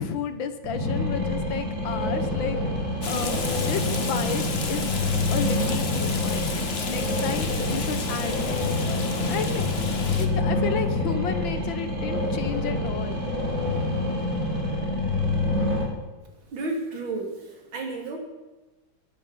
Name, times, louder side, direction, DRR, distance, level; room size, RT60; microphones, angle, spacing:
voice 1, 0.0-4.9 5.3-6.6 6.9-8.7 9.2-9.7 10.2-13.2, left 6 dB, 70° left, 10 dB, 1.9 m, -32 dB
sound 1, 0.6-15.8, left 2 dB, 40° right, 4.5 m, -27 dB
Rain, 3.0-10.3, left 5 dB, 35° left, 1.3 m, -32 dB
voice 2, 16.5-18.2, right 2 dB, 75° right, 2 dB, 3.6 m, -32 dB
21.5 x 11.0 x 5.7 m, 1.2 s
omnidirectional pair, 2.2 m